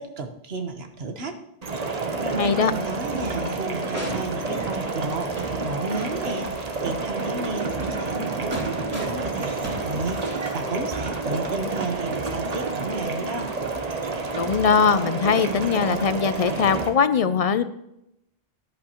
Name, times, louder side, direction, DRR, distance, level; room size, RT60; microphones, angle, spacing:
voice 1, 0.0-1.4 2.2-13.5, right 3 dB, 75° right, 6 dB, 1.4 m, -32 dB
sound 1, 1.6-16.9, right 3 dB, 40° right, 1.0 m, -29 dB
voice 2, 2.4-2.7 14.3-17.6, left 6 dB, 50° left, 13 dB, 0.5 m, -21 dB
sound 2, 3.7-5.6 6.0-6.1 6.5-6.6 7.7-10.7, equal, 15° right, 2.8 m, -38 dB
13.5 x 10.5 x 3.0 m, 0.82 s
omnidirectional pair, 1.0 m